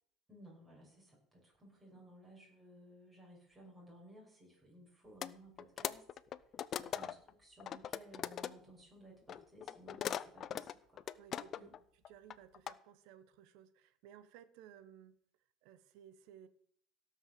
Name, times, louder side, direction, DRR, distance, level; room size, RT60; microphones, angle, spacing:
voice 1, 0.3-6.0 6.4-11.0 11.5-11.7, right 1 dB, 10° right, -3 dB, 6.3 m, -58 dB
sound 1, 5.2-5.3 5.6-7.3 7.6-8.5 9.3-11.8 12.0-12.7, left 9 dB, 40° left, 0.6 m, -40 dB
voice 2, 11.1-11.7 11.9-15.1 15.6-16.5, right 9 dB, 75° right, 13 dB, 1.2 m, -58 dB
16.5 x 6.3 x 6.9 m, 0.63 s
cardioid pair, 135°, 0 cm